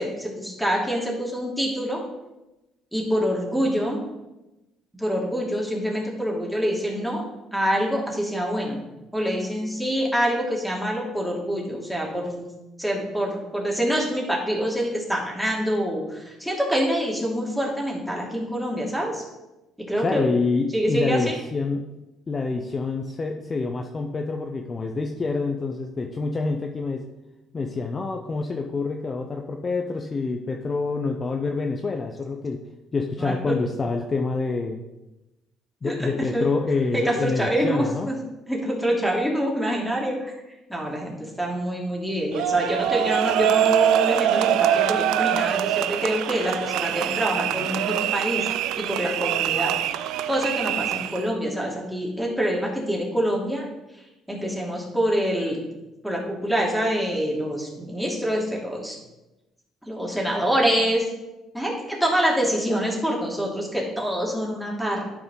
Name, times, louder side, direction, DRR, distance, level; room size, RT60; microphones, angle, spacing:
voice 1, 0.0-2.0 2.9-4.0 5.0-7.2 7.5-8.8 9.1-12.5 12.8-19.2 19.8-20.2 20.7-21.4 33.2-33.5 35.8-36.5 36.9-38.1 38.5-40.3 40.7-48.5 48.8-49.7 50.0-53.7 53.9-55.6 56.0-59.0 59.9-61.1 61.5-65.0, equal, 5° right, -3 dB, 2.6 m, -26 dB
voice 2, 20.0-21.9 22.3-27.0 27.5-32.6 32.9-34.8 35.8-38.1, left 4 dB, 35° left, 3 dB, 0.7 m, -27 dB
sound 1, 42.3-51.3, right 11 dB, 80° right, 0.3 m, -24 dB
11.5 x 4.8 x 3.9 m, 1.0 s
supercardioid pair, 85°, 0 cm